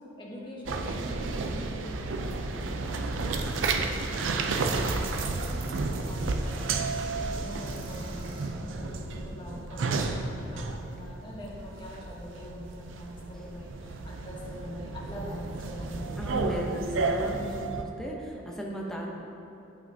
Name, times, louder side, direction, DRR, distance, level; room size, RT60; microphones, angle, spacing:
voice 1, 0.2-3.8 4.2-5.7 6.1-6.7 7.0-16.1, equal, 25° left, -5 dB, 1.2 m, -43 dB
sound 1, 0.7-17.8, right 3 dB, 80° right, 0.5 m, -32 dB
sound 2, 3.3-8.5, right 1 dB, 25° right, 1.0 m, -49 dB
voice 2, 16.2-19.1, equal, 5° left, -2 dB, 0.8 m, -36 dB
9.7 x 5.6 x 2.8 m, 2.8 s
head